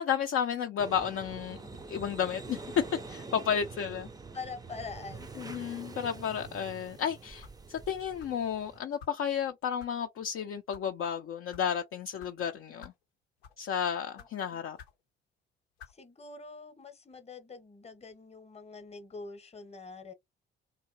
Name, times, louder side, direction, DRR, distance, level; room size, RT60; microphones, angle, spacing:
voice 1, 0.0-1.6 1.9-2.8 3.1-4.1 5.4-12.9 13.6-14.8, left 8 dB, 45° left, 0.5 m, -32 dB
sound 1, 0.8-8.8, right 3 dB, 15° right, 0.5 m, -45 dB
voice 2, 4.3-5.4 14.1-14.7 15.9-20.1, left 4 dB, 20° left, 0.9 m, -45 dB
sound 2, 5.5-5.8 6.4-6.7 7.4-7.6 8.2-8.4 9.0-9.2 9.8-9.9 10.5-10.9 11.5-11.7 12.2-12.3 12.8-13.0 13.4-13.7 14.2-14.3 14.8-15.0 15.8-16.0, left 7 dB, 85° left, 0.7 m, -52 dB
2.8 x 2.2 x 2.8 m
hypercardioid pair, 50°, 30 cm